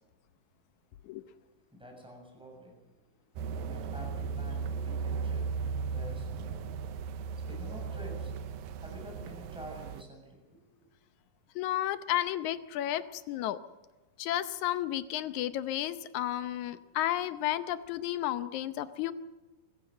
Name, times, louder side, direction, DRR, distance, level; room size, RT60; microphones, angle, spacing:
voice 1, 1.7-2.8 3.6-5.5 5.8-6.5 7.0-8.3 8.8-10.9, equal, ahead, 1 dB, 6.9 m, -48 dB
sound 1, 3.4-10.0, right 5 dB, 85° right, 2.7 m, -36 dB
voice 2, 11.6-13.6 14.2-19.1, left 13 dB, 70° left, 12 dB, 2.0 m, -32 dB
24.5 x 15.5 x 7.7 m, 1.1 s
omnidirectional pair, 4.0 m